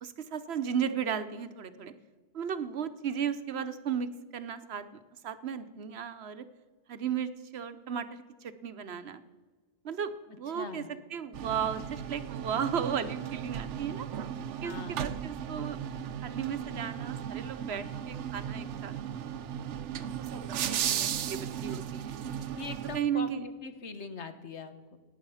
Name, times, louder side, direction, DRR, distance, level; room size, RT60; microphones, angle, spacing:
voice 1, 0.0-1.9 2.3-4.8 5.2-6.5 6.9-9.2 9.8-10.8 11.1-14.1 14.6-15.8 16.2-18.9 20.0-22.2 22.9-23.4, right 7 dB, 65° right, 12 dB, 1.0 m, -35 dB
voice 2, 10.5-10.9 14.6-15.0 22.5-25.0, left 4 dB, 75° left, 10 dB, 1.5 m, -42 dB
sound 1, 11.3-23.0, right 9 dB, 90° right, 1.0 m, -36 dB
17.5 x 10.0 x 5.6 m, 1.4 s
omnidirectional pair, 1.2 m